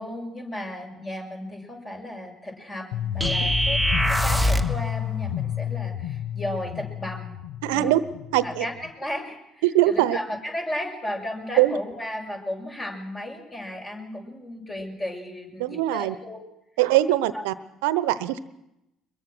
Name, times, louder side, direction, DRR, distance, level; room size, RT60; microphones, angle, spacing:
voice 1, 0.0-3.8 4.1-7.4 7.7-7.9 8.4-16.4 17.3-17.5, left 1 dB, 30° left, 2 dB, 6.9 m, -34 dB
sound 1, 2.9-8.9, left 10 dB, 70° left, 1.3 m, -31 dB
sound 2, 3.2-4.8, equal, 5° left, 1.3 m, -23 dB
voice 2, 7.6-8.0 8.3-8.6 9.6-10.2 11.6-11.8 15.6-16.1 16.8-17.5 17.8-18.4, right 15 dB, 70° right, 16 dB, 1.0 m, -21 dB
23.5 x 22.0 x 6.2 m, 0.87 s
hypercardioid pair, 55°, 0 cm